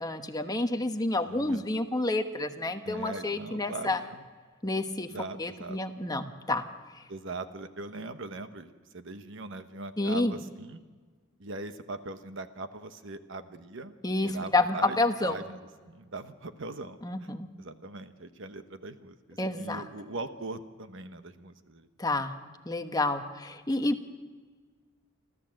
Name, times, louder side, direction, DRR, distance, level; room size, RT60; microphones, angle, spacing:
voice 1, 0.0-4.0 4.6-5.1 5.4-6.6 10.0-10.4 14.0-15.4 17.0-17.5 19.4-19.8 22.0-22.3 22.6-24.0, left 2 dB, 20° left, 7 dB, 1.1 m, -29 dB
voice 2, 1.2-1.6 2.8-4.2 5.1-5.8 7.1-10.8 11.4-13.9 14.2-15.6 15.9-17.3 17.6-21.9, right 2 dB, 65° right, 9 dB, 1.1 m, -41 dB
28.5 x 13.0 x 7.7 m, 1.5 s
head